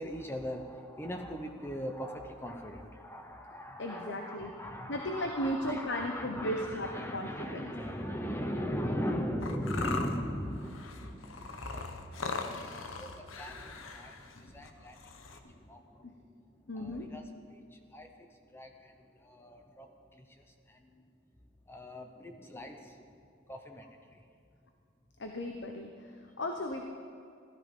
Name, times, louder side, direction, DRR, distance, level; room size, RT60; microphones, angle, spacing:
voice 1, 0.0-15.0 15.3-16.0 16.7-17.2 17.5-18.1 18.5-18.9 19.2-21.0 21.7-23.2 23.5-23.9 24.1-24.2, equal, 10° left, 4 dB, 0.8 m, -39 dB
voice 2, 3.8-4.5 4.9-7.7 14.3-14.7 16.0-16.1 16.7-17.1 25.2-26.9, equal, 60° left, 3 dB, 1.0 m, -36 dB
sound 1, 9.4-15.4, left 4 dB, 85° left, 1.1 m, -40 dB
16.5 x 13.0 x 5.4 m, 2.4 s
head